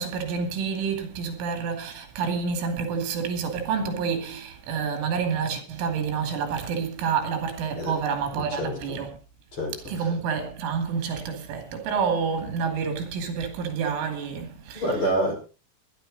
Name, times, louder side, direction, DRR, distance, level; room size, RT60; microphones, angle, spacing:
voice 1, 0.0-9.2 9.9-14.8, right 6 dB, 80° right, 5.0 m, -28 dB
voice 2, 8.3-8.8 9.5-10.1 14.7-15.3, right 1 dB, 25° left, 5.6 m, -27 dB
19.0 x 11.5 x 4.0 m
omnidirectional pair, 5.6 m